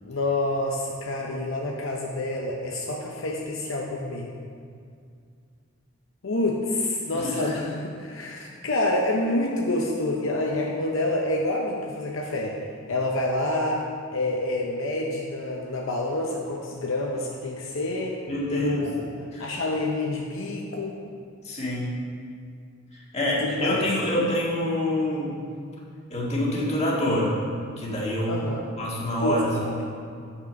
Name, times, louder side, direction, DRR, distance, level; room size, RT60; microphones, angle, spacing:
voice 1, 0.0-4.3 6.2-12.6 12.9-13.9 14.1-18.2 18.5-19.1 19.4-21.0 23.4-23.8 28.3-28.7 29.2-29.7, left 2 dB, 75° left, -1 dB, 0.8 m, -27 dB
voice 2, 7.1-7.5 18.3-18.9 19.3-19.5 21.4-21.9 22.9-25.4 26.1-27.3 27.8-28.5 28.8-29.5, left 1 dB, 30° left, -5 dB, 1.8 m, -26 dB
8.1 x 5.9 x 5.2 m, 2.3 s
head